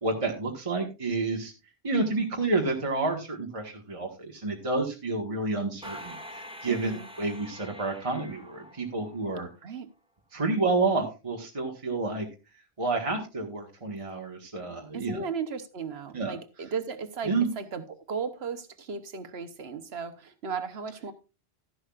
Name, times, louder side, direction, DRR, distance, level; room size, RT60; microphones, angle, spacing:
voice 1, 0.0-1.5 1.8-6.9 7.2-9.5 10.3-12.2 12.8-15.3 16.1-16.4 17.2-17.5, right 3 dB, 30° right, 1.5 m, -29 dB
sound 1, 5.8-9.5, equal, 5° right, 1.3 m, -45 dB
voice 2, 6.6-7.1 9.6-9.9 14.9-21.1, right 5 dB, 75° right, 1.3 m, -36 dB
12.5 x 11.0 x 2.4 m
omnidirectional pair, 1.1 m